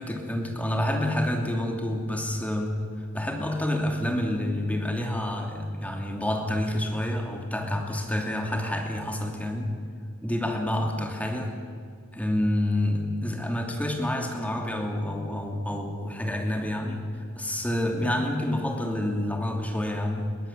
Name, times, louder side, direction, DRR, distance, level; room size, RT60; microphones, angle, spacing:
voice 1, 0.0-2.8 3.1-9.8 10.2-11.5 12.1-20.4, left 1 dB, 5° left, 2 dB, 2.8 m, -28 dB
22.0 x 16.5 x 8.7 m, 2.1 s
head